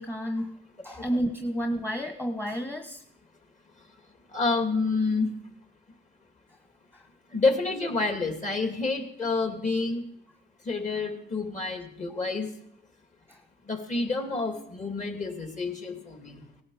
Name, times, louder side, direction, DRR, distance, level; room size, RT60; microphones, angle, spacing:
voice 1, 0.0-3.0 6.9-7.1 12.1-12.2 13.3-13.4, equal, 10° left, 4 dB, 1.4 m, -31 dB
voice 2, 4.3-5.3 7.3-10.0 10.7-12.5 13.7-16.4, left 3 dB, 35° left, 4 dB, 2.8 m, -28 dB
18.0 x 11.5 x 5.0 m, 0.71 s
cardioid pair, 90°, 20 cm